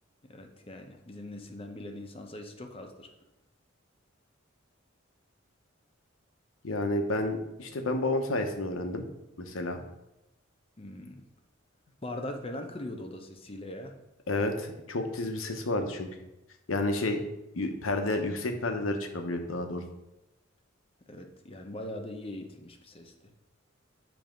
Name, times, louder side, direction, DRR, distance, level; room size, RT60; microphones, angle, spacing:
voice 1, 0.2-3.1 10.8-11.2 12.0-13.9 21.1-23.1, left 1 dB, 30° left, 4 dB, 0.7 m, -41 dB
voice 2, 6.6-9.0 9.4-9.8 14.3-16.1 16.7-17.2 17.5-19.8, left 2 dB, 85° left, 5 dB, 0.9 m, -30 dB
7.1 x 3.4 x 5.1 m, 0.92 s
head